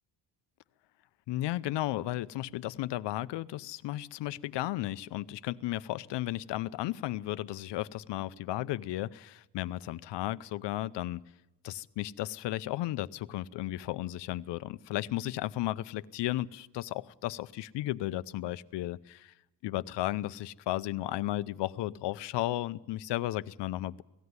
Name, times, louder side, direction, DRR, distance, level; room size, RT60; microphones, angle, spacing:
voice 1, 1.3-11.2 11.6-19.3 19.6-24.0, left 15 dB, 90° left, 16 dB, 0.7 m, -34 dB
18.5 x 15.0 x 9.6 m, 0.95 s
cardioid pair, 160°, 41 cm